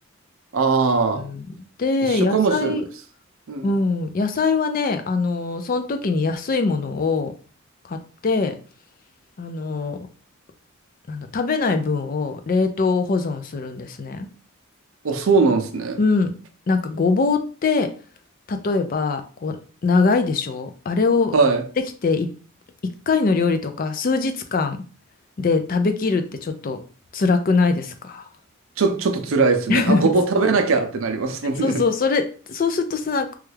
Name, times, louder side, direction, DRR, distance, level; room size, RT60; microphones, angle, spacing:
voice 1, 0.5-1.3 2.0-2.8 3.5-3.7 15.0-16.0 21.3-21.6 28.8-31.8, right 4 dB, 75° right, 0.5 m, -20 dB
voice 2, 1.2-1.5 1.8-2.8 3.6-7.3 7.9-8.0 8.2-8.5 9.4-10.0 11.1-14.3 16.0-16.3 16.7-17.9 18.5-19.6 19.8-21.3 22.0-22.3 23.1-24.8 25.4-26.8 27.1-28.3 29.7-30.1 31.6-33.4, left 4 dB, 40° left, 0.4 m, -22 dB
3.2 x 2.3 x 3.2 m
head